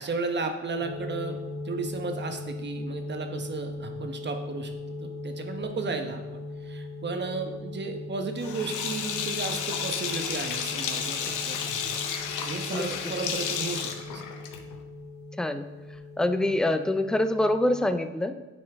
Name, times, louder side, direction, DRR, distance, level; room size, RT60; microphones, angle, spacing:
voice 1, 0.0-1.4 1.6-6.2 6.6-11.8 12.4-14.2, right 4 dB, 35° right, 5 dB, 1.0 m, -34 dB
sound 1, 0.8-17.9, left 2 dB, 35° left, 2.2 m, -39 dB
Sink (filling or washing), 8.4-14.8, left 7 dB, 85° left, 0.8 m, -32 dB
voice 2, 16.2-18.4, left 1 dB, ahead, 9 dB, 0.4 m, -25 dB
9.7 x 4.3 x 3.5 m, 1.2 s
cardioid pair, 90°, 30 cm